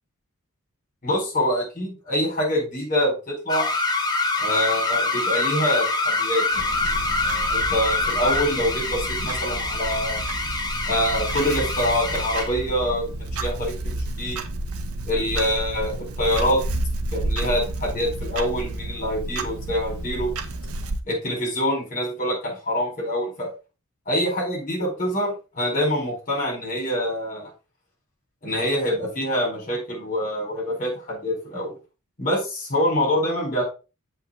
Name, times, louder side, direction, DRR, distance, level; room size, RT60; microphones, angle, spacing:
voice 1, 1.0-3.7 4.4-10.2 10.8-14.4 15.0-16.6 17.1-20.3 21.1-23.5 24.1-27.5 28.4-31.7 32.2-33.6, equal, 35° left, -1 dB, 4.6 m, -25 dB
sound 1, 3.5-12.6, left 3 dB, 20° left, 1.0 m, -25 dB
Clock, 6.5-21.0, right 2 dB, 70° right, 0.9 m, -31 dB
7.8 x 5.2 x 3.8 m, 0.31 s
head